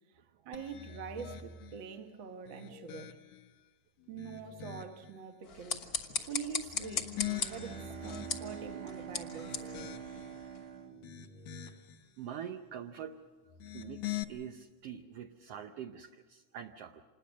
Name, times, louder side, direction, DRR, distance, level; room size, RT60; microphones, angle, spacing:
voice 1, 0.4-3.2 4.1-5.9 6.2-7.2 7.5-9.6, right 6 dB, 50° right, 1.7 m, -44 dB
sound 1, 0.5-1.8 2.4-3.5 4.0-5.1 6.6-8.7 9.2-10.4 10.9-12.0 13.5-14.2, left 11 dB, 75° left, 2.2 m, -43 dB
sound 2, 5.4-10.7, left 5 dB, 45° left, 1.3 m, -39 dB
Bowed string instrument, 7.1-12.0, right 9 dB, 90° right, 2.8 m, -46 dB
voice 2, 11.1-11.8 12.2-13.2 13.7-17.0, right 9 dB, 65° right, 1.6 m, -45 dB
27.0 x 20.5 x 6.3 m
omnidirectional pair, 3.4 m